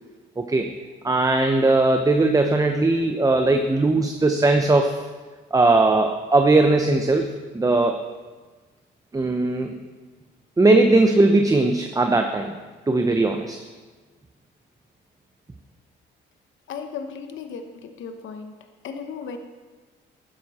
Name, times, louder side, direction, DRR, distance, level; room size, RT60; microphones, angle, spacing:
voice 1, 0.4-0.7 1.0-5.1 5.5-8.1 9.1-9.8 10.6-12.6 12.9-13.6, right 2 dB, 15° right, 5 dB, 0.7 m, -19 dB
voice 2, 16.7-18.5 18.8-19.4, left 6 dB, 75° left, 6 dB, 1.0 m, -35 dB
12.0 x 9.9 x 4.2 m, 1.3 s
cardioid pair, 90°, 20 cm